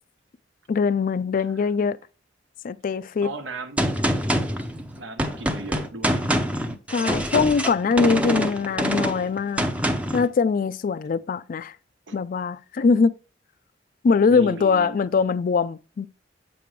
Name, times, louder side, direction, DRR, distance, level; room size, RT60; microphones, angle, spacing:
voice 1, 0.7-2.0 2.6-3.3 6.9-9.7 10.1-11.7 12.1-13.1 14.0-16.1, left 5 dB, 45° left, 0.3 m, -22 dB
voice 2, 3.2-3.9 5.0-6.3 12.1-12.2 14.3-15.0, right 2 dB, 75° right, 1.0 m, -36 dB
Gunshot gunfire, 3.8-10.3, equal, 5° right, 0.6 m, -25 dB
7.6 x 5.2 x 3.2 m
head